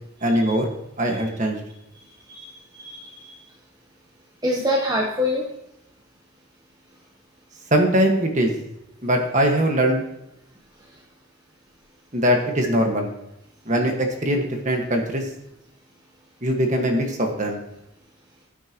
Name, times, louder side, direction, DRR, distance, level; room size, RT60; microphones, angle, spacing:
voice 1, 0.2-0.7 1.0-1.6 7.7-8.5 9.0-10.0 12.1-13.1 13.6-15.2 16.4-17.6, equal, 35° right, 2 dB, 1.7 m, -21 dB
voice 2, 2.3-3.3 4.4-5.5, left 1 dB, 20° right, -1 dB, 1.1 m, -26 dB
15.0 x 9.0 x 3.1 m, 0.84 s
head